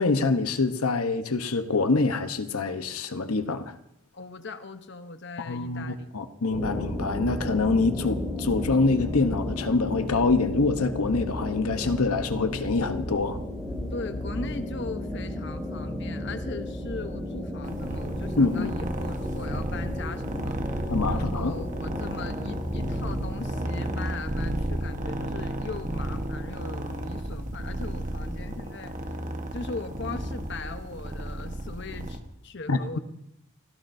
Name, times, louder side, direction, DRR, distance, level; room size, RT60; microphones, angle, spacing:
voice 1, 0.0-3.7 5.5-13.4 18.4-18.8 20.9-21.6 32.7-33.0, left 3 dB, 85° left, 1.0 m, -25 dB
voice 2, 4.1-6.1 13.9-29.0 29.5-33.0, left 3 dB, 50° left, 0.9 m, -39 dB
sound 1, 6.5-24.0, left 1 dB, ahead, 3.1 m, -34 dB
sound 2, 17.6-32.2, right 1 dB, 35° right, 1.2 m, -33 dB
28.0 x 16.0 x 2.7 m
head